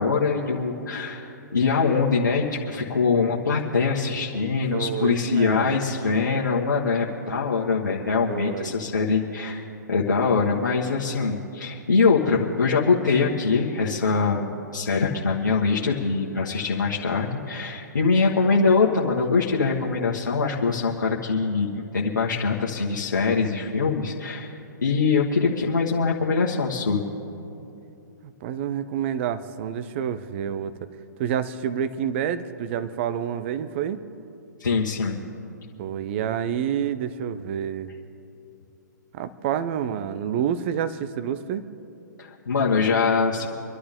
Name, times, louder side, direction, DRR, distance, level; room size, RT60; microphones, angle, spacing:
voice 1, 0.0-27.0 34.6-35.2 42.2-43.5, left 4 dB, 70° left, -4 dB, 1.5 m, -23 dB
voice 2, 4.7-5.7 8.3-8.8 28.2-30.7 31.2-34.0 35.8-37.9 39.1-41.6, right 9 dB, 40° right, 13 dB, 0.8 m, -28 dB
26.0 x 11.5 x 3.7 m, 2.8 s
figure-of-eight pair, 120°, 10 cm